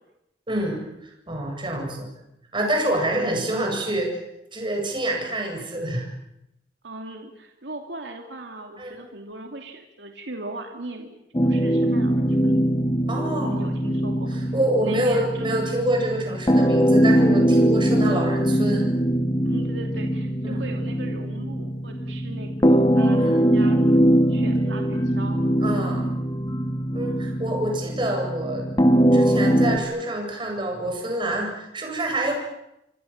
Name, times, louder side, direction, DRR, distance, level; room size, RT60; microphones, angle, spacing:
voice 1, 0.5-2.1 2.5-4.2 4.5-6.1 8.8-8.9 13.1-13.7 14.5-18.9 20.4-20.6 23.2-23.4 25.6-26.1 26.9-28.7 29.1-32.3, right 1 dB, 25° right, 2 dB, 7.8 m, -26 dB
voice 2, 6.8-11.1 11.4-12.6 13.4-14.4 14.8-15.7 18.4-18.5 19.4-23.8 24.3-25.4, right 2 dB, 80° right, 3 dB, 2.8 m, -38 dB
sound 1, 11.3-29.8, equal, 25° left, 2.0 m, -21 dB
28.5 x 24.5 x 7.4 m, 0.86 s
head